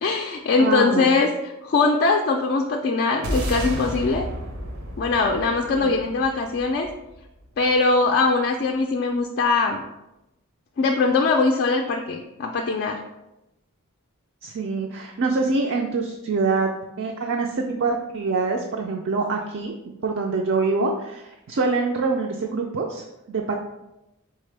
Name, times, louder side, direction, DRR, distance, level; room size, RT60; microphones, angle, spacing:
voice 1, 0.0-1.3 1.6-4.3 5.0-6.9 7.6-9.8 10.8-13.0, left 3 dB, 45° left, 2 dB, 0.3 m, -21 dB
voice 2, 0.6-1.1 5.7-6.0 14.4-16.7 17.0-19.7 20.0-23.6, right 4 dB, 55° right, 1 dB, 0.4 m, -25 dB
sound 1, 3.2-7.7, equal, 75° right, 0.8 m, -32 dB
4.2 x 3.6 x 3.2 m, 0.92 s
head